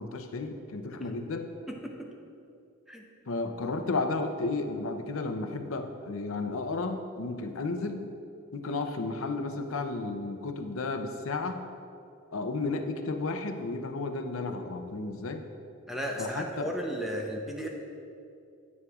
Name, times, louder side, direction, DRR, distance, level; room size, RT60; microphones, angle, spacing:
voice 1, 0.0-1.5 3.3-8.1 8.5-11.6 12.3-15.4 16.2-16.7, left 3 dB, 75° left, 6 dB, 0.6 m, -33 dB
voice 2, 1.7-2.1 2.9-3.0 15.9-17.7, equal, ahead, 0 dB, 0.7 m, -35 dB
9.5 x 9.3 x 2.4 m, 2.5 s
head